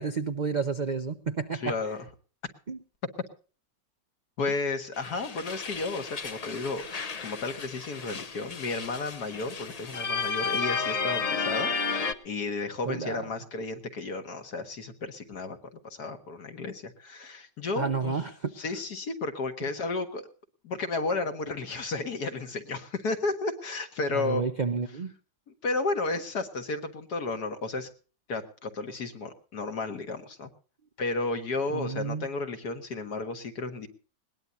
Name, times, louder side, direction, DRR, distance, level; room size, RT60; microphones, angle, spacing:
voice 1, 0.0-1.7 2.7-2.8 12.8-13.2 17.8-18.5 24.1-25.1 31.7-32.3, right 5 dB, 55° right, 0.5 m, -30 dB
voice 2, 1.5-2.1 4.4-6.8 7.2-18.3 18.6-20.3 20.6-24.4 25.6-27.9 28.3-30.5 31.0-33.9, left 3 dB, 65° left, 2.1 m, -33 dB
sound 1, 4.9-12.1, left 5 dB, 40° left, 0.5 m, -32 dB
21.0 x 19.0 x 2.7 m
omnidirectional pair, 1.8 m